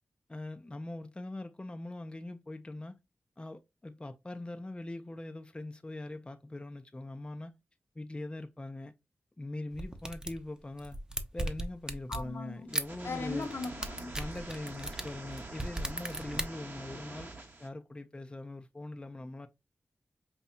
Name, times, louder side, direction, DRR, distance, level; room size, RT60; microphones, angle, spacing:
voice 1, 0.3-3.0 3.4-7.5 8.0-8.9 9.4-11.0 11.3-13.5 14.1-17.3 17.6-19.5, left 2 dB, 20° left, 0.5 m, -42 dB
sound 1, 9.7-10.4 10.8-12.3 12.7-12.8 13.4-16.4, right 1 dB, 15° right, 0.8 m, -36 dB
voice 2, 12.1-12.7 13.0-14.1, left 4 dB, 65° left, 0.9 m, -38 dB
sound 2, 12.7-17.7, right 2 dB, 45° right, 1.4 m, -45 dB
5.5 x 2.3 x 2.7 m
cardioid pair, 45°, 4 cm